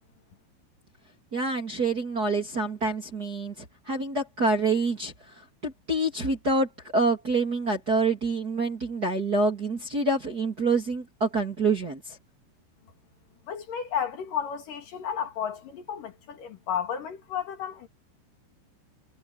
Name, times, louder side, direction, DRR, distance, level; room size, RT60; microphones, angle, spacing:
voice 1, 1.3-12.2, right 3 dB, 25° right, 2.8 m, -27 dB
voice 2, 13.5-17.9, left 8 dB, 55° left, 3.1 m, -32 dB
omnidirectional pair, 5.7 m